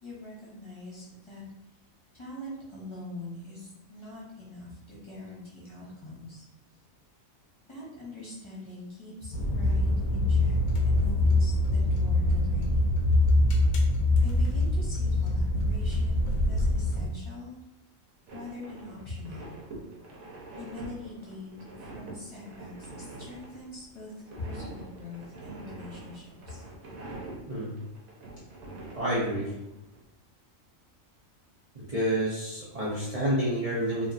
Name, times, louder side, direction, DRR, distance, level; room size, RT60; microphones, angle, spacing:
voice 1, 0.0-1.4 2.1-6.4 7.7-13.0 14.2-17.6 18.3-19.5 20.6-26.6, left 2 dB, 30° left, -7 dB, 0.7 m, -42 dB
sound 1, 9.3-17.1, left 2 dB, 85° left, 1.0 m, -24 dB
sound 2, 18.3-30.0, right 2 dB, 90° right, 1.1 m, -45 dB
voice 2, 27.5-27.8 29.0-29.5 31.7-34.1, equal, 75° right, -8 dB, 0.3 m, -29 dB
2.8 x 2.3 x 2.4 m, 0.87 s
omnidirectional pair, 1.4 m